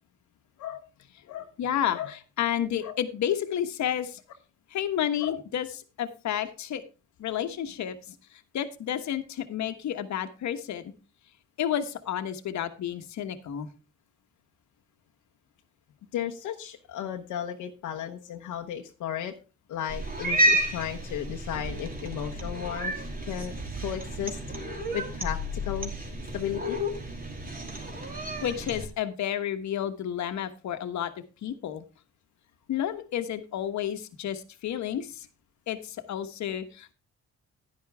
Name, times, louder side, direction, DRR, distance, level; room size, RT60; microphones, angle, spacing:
voice 1, 1.6-4.2 4.7-5.7 6.0-6.8 7.2-8.0 8.3-10.9 11.6-13.7 28.4-31.1 31.4-31.8 32.7-35.3 35.7-36.9, left 10 dB, 65° left, 8 dB, 1.3 m, -31 dB
voice 2, 16.1-19.3 19.7-22.9 23.3-23.5 23.8-24.4 24.9-25.9 26.3-26.8, left 10 dB, 85° left, 3 dB, 1.1 m, -34 dB
Cat, 19.9-28.9, right 1 dB, 30° right, 2.7 m, -31 dB
10.5 x 10.5 x 3.5 m, 0.31 s
cardioid pair, 90°, 30 cm